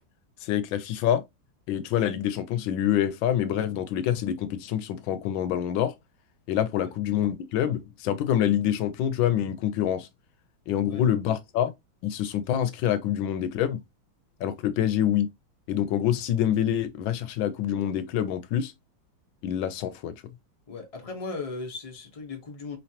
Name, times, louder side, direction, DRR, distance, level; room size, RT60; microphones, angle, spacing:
voice 1, 0.4-1.2 1.7-5.9 6.5-10.1 10.7-11.7 12.0-13.8 14.4-15.3 15.7-18.7 19.4-20.1, left 10 dB, 85° left, 1.4 m, -26 dB
voice 2, 20.7-22.8, left 3 dB, 35° left, 0.5 m, -37 dB
4.6 x 3.2 x 2.7 m
omnidirectional pair, 2.1 m